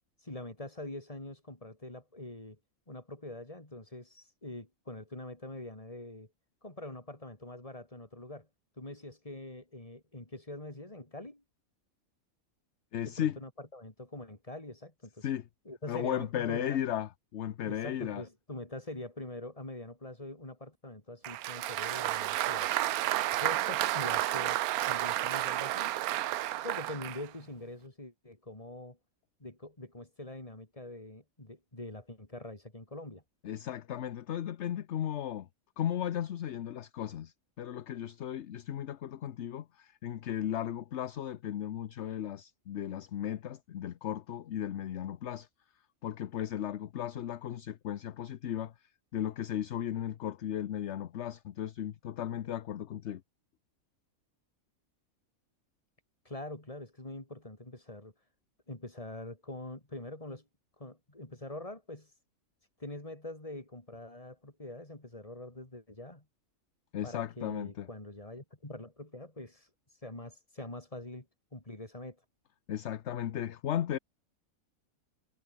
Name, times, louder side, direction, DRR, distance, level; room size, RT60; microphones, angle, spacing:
voice 1, 0.2-2.6 2.9-6.3 6.6-8.5 8.8-11.4 13.0-15.3 15.7-16.8 17.6-22.7 23.4-25.9 26.6-29.0 29.4-33.2 56.3-58.1 58.7-60.5 60.8-62.1 62.8-66.3 67.0-69.7 70.0-71.3 71.5-72.2, left 1 dB, 25° left, 3.7 m, -44 dB
voice 2, 12.9-13.4 15.2-15.4 15.9-18.2 33.4-35.5 35.8-45.5 46.0-53.2 66.9-67.9 72.7-74.0, left 10 dB, 60° left, 1.0 m, -35 dB
Applause, 21.2-27.3, right 14 dB, 85° right, 1.1 m, -31 dB
omnidirectional pair, 1.5 m